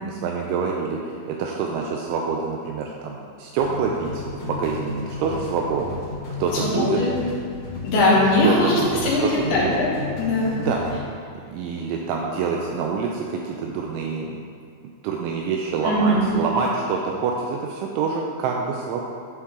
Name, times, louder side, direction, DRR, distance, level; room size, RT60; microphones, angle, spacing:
voice 1, 0.0-6.0 6.4-7.0 8.4-8.9 9.2-9.8 10.6-10.8 11.5-14.4 15.0-19.0, right 5 dB, 85° right, 0 dB, 2.7 m, -26 dB
sound 1, 3.6-11.0, left 4 dB, 50° left, 2.9 m, -34 dB
voice 2, 6.5-7.1 7.8-8.7 9.0-9.2 9.5-9.9 10.2-10.6 15.8-16.3, left 1 dB, 70° left, -7 dB, 3.5 m, -20 dB
11.5 x 4.3 x 3.7 m, 2.2 s
omnidirectional pair, 5.8 m